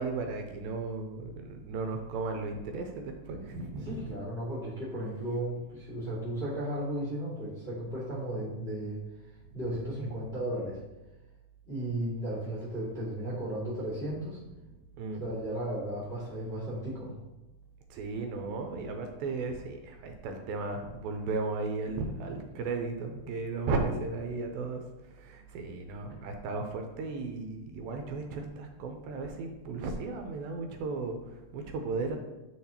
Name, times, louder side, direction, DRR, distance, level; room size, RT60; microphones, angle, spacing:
voice 1, 0.0-4.2 15.0-15.2 17.9-32.2, right 3 dB, 80° right, 4 dB, 2.4 m, -35 dB
voice 2, 3.8-9.0 9.5-10.8 11.7-14.4 15.2-17.1 25.7-25.9, right 1 dB, 30° left, -6 dB, 1.1 m, -35 dB
10.0 x 4.0 x 2.9 m, 1.0 s
omnidirectional pair, 4.4 m